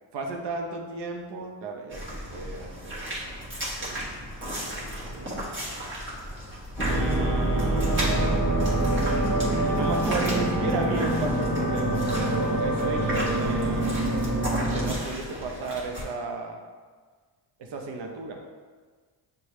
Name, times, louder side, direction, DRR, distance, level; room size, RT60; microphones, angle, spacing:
voice 1, 0.1-2.0 2.3-3.4 3.8-5.5 6.9-8.5 9.7-14.0 14.7-16.6 17.6-18.4, right 3 dB, 65° right, 2 dB, 0.7 m, -34 dB
sound 1, 1.9-16.0, equal, 25° right, 1.2 m, -36 dB
sound 2, 6.8-14.9, right 1 dB, 5° left, 1.0 m, -25 dB
6.3 x 2.3 x 3.0 m, 1.5 s
cardioid pair, 105°, 45 cm